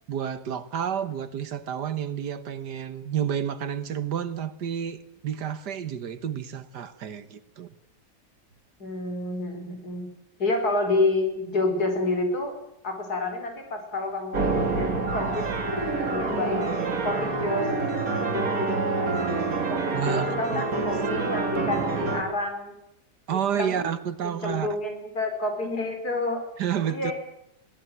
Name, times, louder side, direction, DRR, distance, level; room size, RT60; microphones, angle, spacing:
voice 1, 0.1-5.0 5.2-7.7 19.9-20.9 23.3-24.7 26.6-27.1, right 9 dB, 75° right, 13 dB, 1.8 m, -30 dB
voice 2, 8.8-10.0 10.4-12.6 12.8-15.5 15.9-17.7 18.0-18.7 19.0-19.4 19.7-22.8 23.3-23.8 24.2-26.4 26.8-27.1, left 2 dB, 60° left, 4 dB, 5.2 m, -29 dB
sound 1, 14.3-22.2, right 3 dB, 55° right, 2.9 m, -27 dB
22.0 x 17.0 x 9.5 m, 0.82 s
omnidirectional pair, 1.9 m